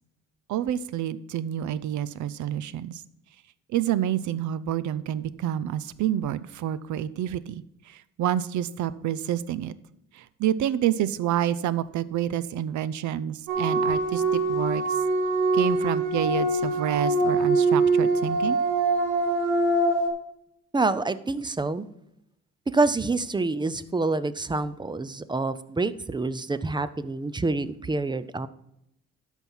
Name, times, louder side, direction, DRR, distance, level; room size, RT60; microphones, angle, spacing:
voice 1, 0.5-3.0 3.7-9.7 10.1-15.0 15.5-18.6, right 11 dB, 75° right, 17 dB, 0.6 m, -28 dB
sound 1, 13.5-20.1, right 3 dB, 90° right, 1.5 m, -23 dB
voice 2, 20.7-21.9 22.7-28.5, right 3 dB, 15° right, 15 dB, 0.5 m, -27 dB
12.5 x 4.6 x 5.5 m, 0.81 s
cardioid pair, 90°, 30 cm